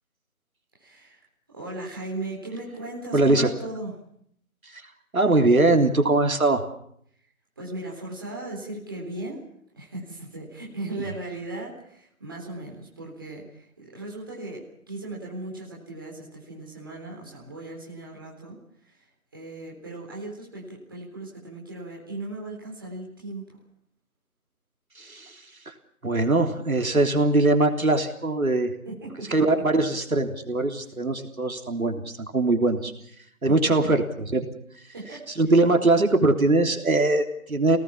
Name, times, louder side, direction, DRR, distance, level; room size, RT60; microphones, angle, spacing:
voice 1, 0.8-3.9 7.6-9.4 9.8-18.6 18.9-19.0 19.3-23.6 28.9-29.5 33.5-33.7 34.9-35.2, right 2 dB, 15° right, -5 dB, 3.9 m, -37 dB
voice 2, 3.1-3.5 4.7-4.8 5.1-6.6 25.0-25.3 26.0-28.7 29.3-32.9 33.4-34.5 35.4-37.8, right 2 dB, 75° right, 4 dB, 3.5 m, -21 dB
27.0 x 19.0 x 7.3 m, 0.69 s
figure-of-eight pair, 180°, 43 cm